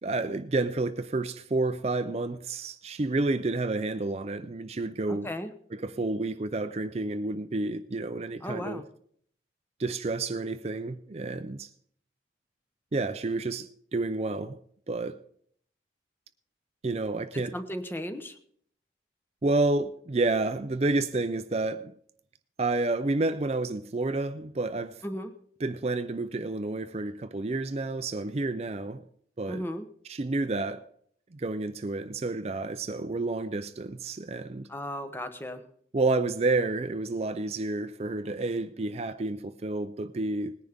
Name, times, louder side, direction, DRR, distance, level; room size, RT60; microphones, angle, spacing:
voice 1, 0.0-5.3 5.7-8.8 9.8-11.7 12.9-14.6 14.9-15.2 16.8-17.6 19.4-21.9 22.6-25.0 25.6-29.0 29.4-29.7 30.1-30.9 31.3-34.7 35.9-40.6, right 2 dB, 35° right, 0.5 m, -30 dB
voice 2, 5.1-5.5 8.4-8.8 17.3-18.3 25.0-25.3 29.5-29.9 34.7-35.6, equal, 10° left, 0.9 m, -35 dB
19.0 x 10.0 x 3.5 m
head